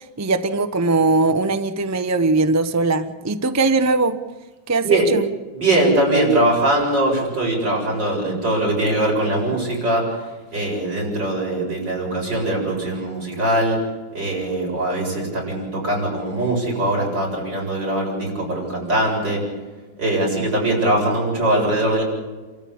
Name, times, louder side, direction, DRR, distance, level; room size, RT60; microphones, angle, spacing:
voice 1, 0.0-4.2 4.7-5.2, right 3 dB, 20° right, 9 dB, 0.4 m, -20 dB
voice 2, 5.5-10.2 10.5-13.8 14.1-19.4 20.0-22.0, right 1 dB, 65° right, -2 dB, 8.3 m, -21 dB
29.0 x 14.0 x 8.6 m, 1.3 s
omnidirectional pair, 2.1 m